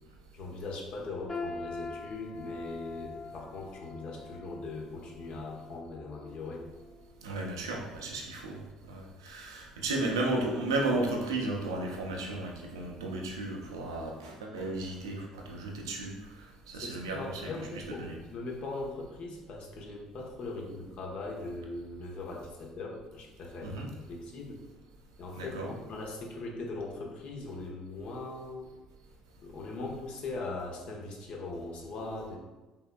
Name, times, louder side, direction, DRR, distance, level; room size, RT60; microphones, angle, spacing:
voice 1, 0.3-6.6 9.6-9.7 16.7-24.6 25.2-28.7 29.4-32.4, left 3 dB, 55° left, 0 dB, 1.0 m, -40 dB
sound 1, 1.3-7.2 7.6-7.9 8.6-8.7, left 3 dB, 20° left, 0.7 m, -44 dB
voice 2, 7.2-8.6 8.9-16.1 16.7-17.5 18.0-18.1 23.6-23.9 25.4-25.7, right 2 dB, 80° right, 0 dB, 0.7 m, -34 dB
5.5 x 3.4 x 2.2 m, 1.2 s
hypercardioid pair, 55°, 2 cm